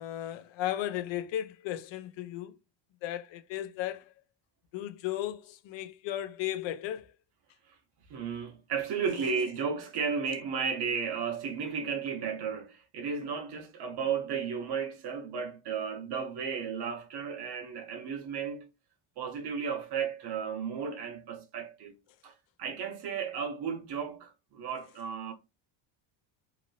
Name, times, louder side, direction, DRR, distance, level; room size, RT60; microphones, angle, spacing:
voice 1, 0.0-2.6 3.0-4.1 4.7-7.1, left 12 dB, 65° left, 0.5 m, -35 dB
voice 2, 8.1-18.7 19.2-21.9 22.2-22.3 22.6-25.3, right 6 dB, 55° right, 0.9 m, -34 dB
2.9 x 2.7 x 2.7 m
cardioid pair, 140°, 49 cm